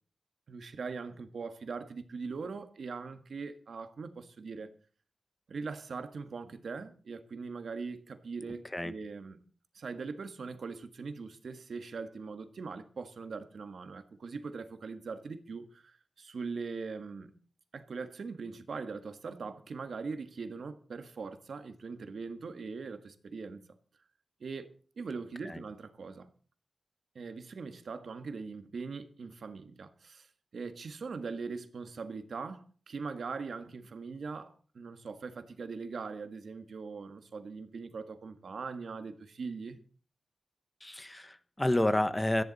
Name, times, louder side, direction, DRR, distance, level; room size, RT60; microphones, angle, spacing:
voice 1, 0.5-4.7 5.5-9.5 9.7-17.4 17.7-23.6 24.4-24.7 25.0-26.3 27.1-39.8, right 4 dB, 75° right, 1.6 m, -41 dB
voice 2, 40.8-42.4, left 1 dB, 15° left, 1.1 m, -29 dB
17.5 x 14.0 x 4.2 m
wide cardioid pair, 115°, 0 cm